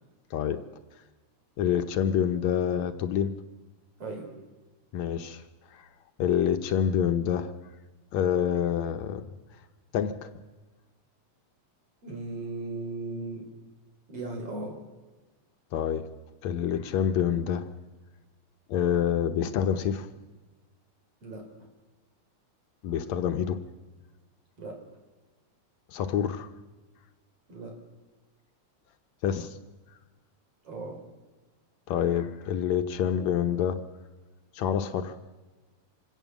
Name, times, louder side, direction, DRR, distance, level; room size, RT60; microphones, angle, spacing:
voice 1, 0.3-0.6 1.6-3.4 4.9-5.4 5.7-5.9 6.2-7.5 8.1-9.2 9.9-10.3 15.7-16.1 16.4-17.7 18.7-20.1 22.8-23.6 25.9-26.5 29.2-29.6 31.9-33.8 34.5-35.2, left 9 dB, 75° left, 8 dB, 2.1 m, -27 dB
voice 2, 12.0-13.4 14.1-14.7 21.2-21.7 24.6-24.7 27.5-27.7 30.6-31.0, right 2 dB, 55° right, 2 dB, 5.3 m, -37 dB
26.0 x 17.0 x 7.2 m, 1.2 s
omnidirectional pair, 3.3 m